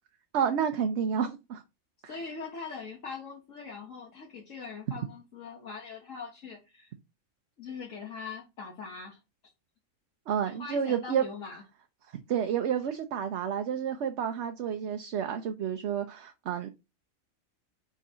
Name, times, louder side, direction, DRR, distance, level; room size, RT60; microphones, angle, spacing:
voice 1, 0.3-1.6 2.0-2.1 10.3-11.2 12.3-16.7, right 8 dB, 60° right, 0.9 m, -30 dB
voice 2, 2.1-6.9 7.6-9.2 10.5-11.6, left 5 dB, 70° left, 1.7 m, -42 dB
5.1 x 3.9 x 5.5 m
omnidirectional pair, 1.4 m